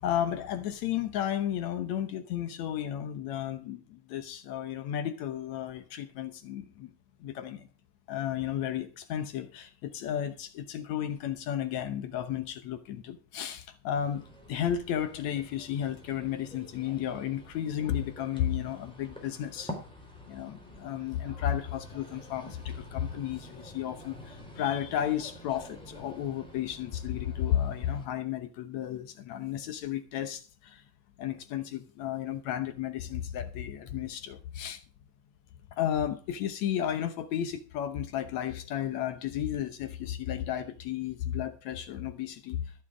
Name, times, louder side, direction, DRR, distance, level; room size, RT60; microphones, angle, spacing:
voice 1, 0.0-6.9 7.2-7.7 8.1-19.7 20.3-30.8 31.2-34.8 35.7-42.7, left 10 dB, 70° left, 2.2 m, -33 dB
sound 1, 13.9-28.1, equal, ahead, 3.7 m, -48 dB
14.5 x 7.0 x 6.1 m
omnidirectional pair, 3.6 m